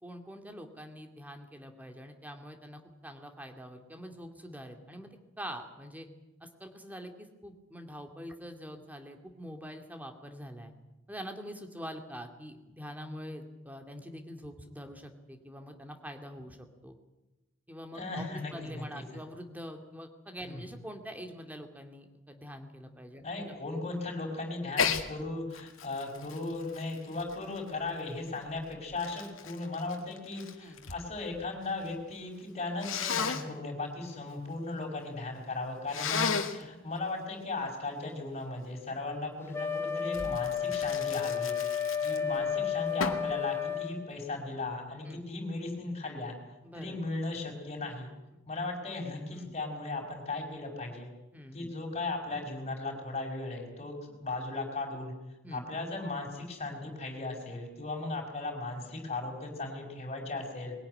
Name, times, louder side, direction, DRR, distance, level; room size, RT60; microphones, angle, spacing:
voice 1, 0.0-6.1 6.4-10.7 11.1-16.9 17.7-23.6 30.6-30.9 36.5-36.7 42.1-42.2 45.1-45.2 46.6-47.0 48.3-48.4 49.3-49.5 51.3-51.7 55.4-55.7, equal, 10° right, 5 dB, 2.3 m, -45 dB
voice 2, 17.9-19.0 20.4-20.6 23.2-41.6 42.0-46.4 46.7-48.1 48.5-51.1 51.5-55.1 55.5-60.7, left 2 dB, 35° left, 1 dB, 5.4 m, -37 dB
Sneeze, 24.7-25.1 25.5-27.9 28.6-31.0 31.3-31.9 32.8-33.4 35.9-36.6 40.1-42.4 43.0-43.3, left 6 dB, 85° left, 2.0 m, -34 dB
Wind instrument woodwind instrument, 39.5-44.0, left 7 dB, 10° left, 1.9 m, -32 dB
22.0 x 16.5 x 9.9 m, 1.0 s
head